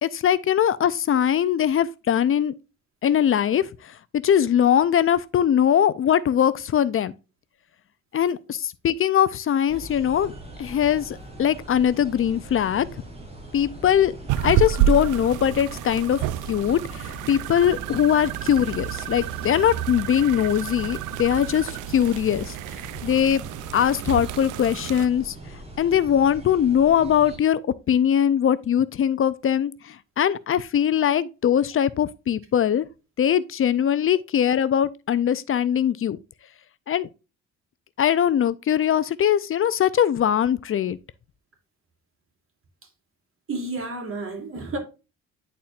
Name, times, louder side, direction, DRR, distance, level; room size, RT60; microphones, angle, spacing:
voice 1, 0.0-2.5 3.0-7.1 8.1-10.3 10.6-12.9 13.5-14.1 14.4-16.2 16.5-22.5 23.0-23.4 23.7-25.4 25.8-27.6 27.9-32.9 33.2-36.2 36.9-37.1 38.0-41.0, left 9 dB, 45° left, 0.5 m, -21 dB
sound 1, 9.7-27.4, right 1 dB, 20° right, 2.7 m, -41 dB
sound 2, 14.3-25.1, right 11 dB, 85° right, 0.5 m, -29 dB
voice 2, 43.5-44.8, right 2 dB, 45° right, 2.8 m, -31 dB
10.5 x 4.3 x 2.4 m
cardioid pair, 90°, 30 cm